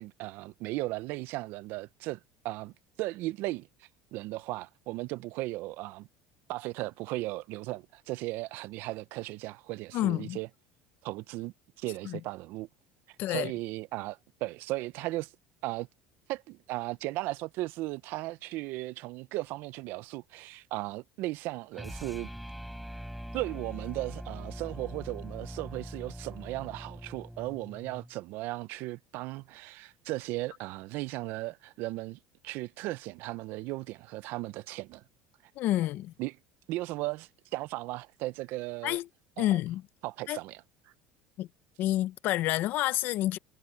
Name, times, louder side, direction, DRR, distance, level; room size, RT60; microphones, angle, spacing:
voice 1, 0.0-2.2 2.4-2.7 3.0-3.7 4.1-6.1 6.5-10.5 11.0-12.7 13.3-15.3 15.6-15.9 16.3-22.3 23.3-35.0 36.2-36.3 36.7-39.0 39.4-39.6 40.0-40.6, right 19 dB, 60° right, 0.7 m, -36 dB
voice 2, 9.9-10.4 12.0-12.2 13.2-13.5 35.6-36.1 38.8-39.1 39.4-39.8 40.3-40.4 41.4-41.5 41.8-43.4, left 15 dB, 55° left, 0.7 m, -29 dB
sound 1, 21.7-28.1, equal, ahead, 5.3 m, -42 dB
cardioid pair, 140°, 4 cm